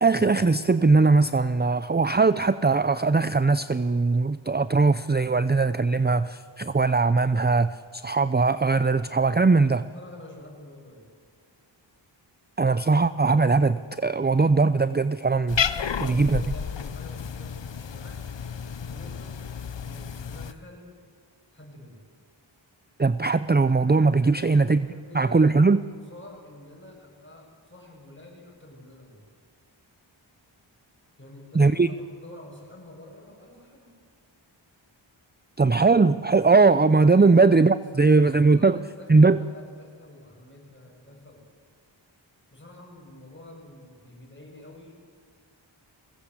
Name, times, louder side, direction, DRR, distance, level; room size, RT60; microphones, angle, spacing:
voice 1, 0.0-9.8 12.6-15.7 16.0-16.4 23.0-24.9 25.1-25.8 31.6-31.9 35.6-38.8 39.1-39.4, right 3 dB, 20° right, 14 dB, 0.6 m, -20 dB
voice 2, 9.9-11.1 15.7-18.2 18.9-19.4 19.8-21.0 21.5-22.0 24.2-29.3 31.2-34.0 37.2-41.4 42.5-44.9, left 1 dB, 25° left, 0 dB, 7.7 m, -47 dB
Cat, 15.5-20.5, left 7 dB, 65° left, 0.9 m, -31 dB
22.5 x 20.0 x 8.2 m, 2.1 s
wide cardioid pair, 60°, 47 cm